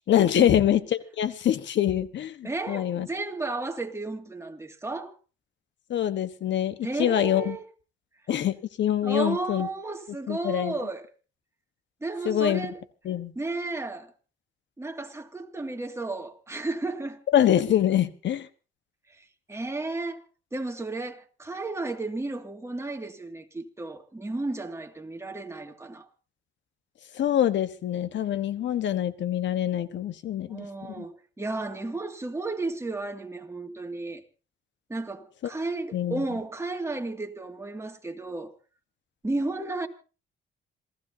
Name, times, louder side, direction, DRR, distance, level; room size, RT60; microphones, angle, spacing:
voice 1, 0.1-3.1 5.9-7.6 8.3-9.7 10.3-10.7 12.2-12.7 13.0-13.3 17.3-18.5 27.1-31.0 35.9-36.2, left 10 dB, 65° left, 1.3 m, -25 dB
voice 2, 2.4-5.1 6.8-7.6 9.0-11.1 12.0-12.8 13.4-14.1 14.8-17.2 19.2-20.2 20.5-26.1 30.5-34.2 34.9-38.6 39.2-39.9, right 2 dB, 15° right, 2.3 m, -33 dB
27.0 x 15.5 x 2.8 m
cardioid pair, 90°, 20 cm